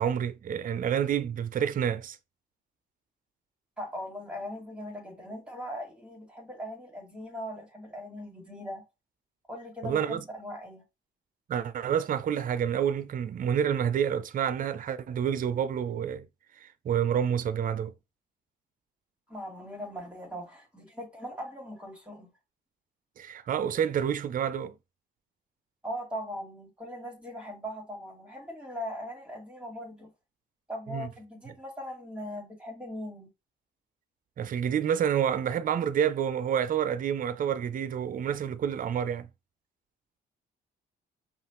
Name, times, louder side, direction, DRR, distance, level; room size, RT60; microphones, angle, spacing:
voice 1, 0.0-2.2 9.8-10.2 11.5-16.3 16.6-17.9 23.2-24.8 30.9-31.1 34.4-39.3, right 8 dB, 45° right, 0.5 m, -28 dB
voice 2, 3.8-8.8 9.5-10.8 19.3-22.3 25.8-30.1 30.7-33.3, equal, 5° right, 2.6 m, -40 dB
5.4 x 2.4 x 3.0 m
cardioid pair, 90°, 20 cm